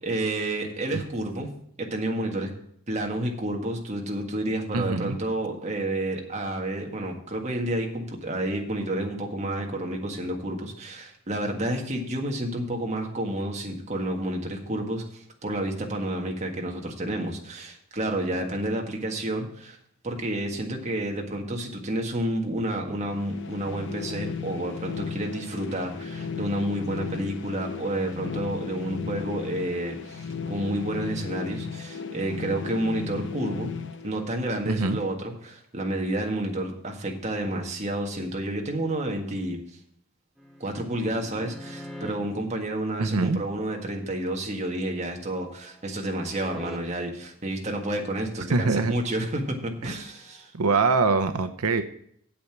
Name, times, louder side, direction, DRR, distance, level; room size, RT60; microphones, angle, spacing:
voice 1, 0.0-1.5 1.8-2.5 2.9-19.8 20.0-33.7 34.0-39.6 40.6-50.5, right 1 dB, 30° right, 1 dB, 1.7 m, -30 dB
voice 2, 4.7-5.2 34.7-35.0 43.0-43.4 48.5-48.9 49.8-49.9 50.5-51.8, right 3 dB, 90° right, 10 dB, 0.7 m, -23 dB
sound 1, 22.8-34.7, left 5 dB, 55° left, 0.8 m, -36 dB
sound 2, 40.4-42.1 44.8-46.8 50.2-50.5, left 1 dB, ahead, 1.3 m, -44 dB
8.5 x 8.0 x 5.9 m, 0.68 s
head